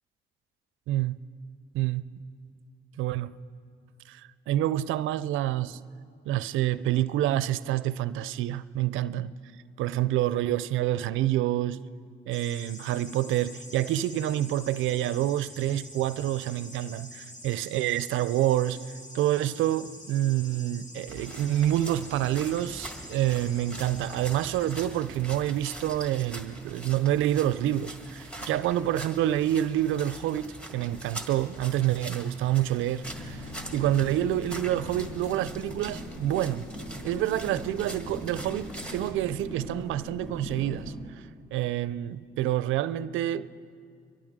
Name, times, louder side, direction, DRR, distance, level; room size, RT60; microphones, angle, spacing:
voice 1, 0.9-1.2 1.7-2.1 3.0-3.4 4.1-5.8 6.3-9.3 9.8-11.9 12.3-18.8 19.1-36.7 37.0-40.9 41.5-43.5, right 13 dB, 80° right, 0.4 m, -27 dB
sound 1, 12.3-24.8, left 1 dB, 35° left, 2.0 m, -46 dB
sound 2, 21.1-39.1, right 1 dB, 5° left, 1.5 m, -43 dB
sound 3, 33.0-41.0, left 1 dB, 80° left, 2.7 m, -41 dB
24.0 x 12.0 x 3.6 m
cardioid pair, 90°, 20 cm